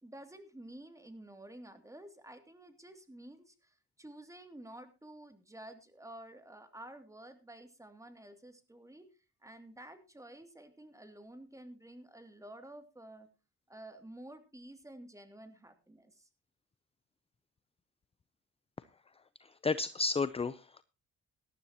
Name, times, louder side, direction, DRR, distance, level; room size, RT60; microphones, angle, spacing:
voice 1, 0.0-9.1 9.4-13.3 13.7-16.3, right 1 dB, 10° right, 8 dB, 2.6 m, -51 dB
voice 2, 19.4-20.8, left 4 dB, 20° left, 15 dB, 0.6 m, -33 dB
18.5 x 12.5 x 2.9 m, 0.29 s
cardioid pair, 90°, 30 cm